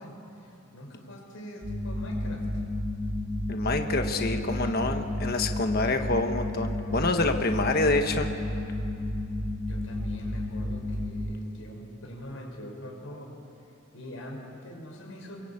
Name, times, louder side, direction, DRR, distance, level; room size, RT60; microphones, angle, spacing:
voice 1, 0.0-2.4 9.7-13.3 13.9-15.4, equal, 65° left, 0 dB, 6.4 m, -43 dB
sound 1, 1.6-11.3, left 1 dB, 60° right, 4.4 m, -32 dB
voice 2, 3.5-8.3, left 2 dB, 45° left, 5 dB, 1.3 m, -27 dB
26.0 x 23.5 x 8.8 m, 2.9 s
head